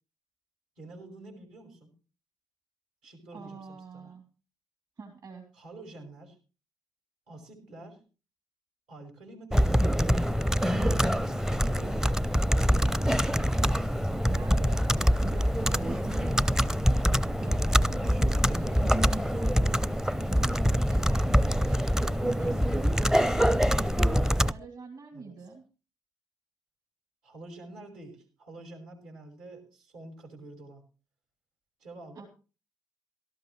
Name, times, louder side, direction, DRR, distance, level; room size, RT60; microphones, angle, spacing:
voice 1, 0.8-1.9 3.0-4.1 5.5-6.4 7.3-8.0 8.9-10.0 10.5-12.2 25.1-25.5 27.2-30.8 31.8-32.3, right 2 dB, 70° right, 2 dB, 5.1 m, -48 dB
voice 2, 3.3-4.2 5.0-5.5 14.3-14.9 15.2-16.5 17.4-19.8 20.3-22.6 23.0-24.0 24.5-25.6 32.2-32.3, right 4 dB, 45° right, 3 dB, 3.4 m, -45 dB
Computer keyboard, 9.5-24.5, equal, 5° right, 0.6 m, -25 dB
17.5 x 13.5 x 3.2 m, 0.35 s
figure-of-eight pair, 45°, 9 cm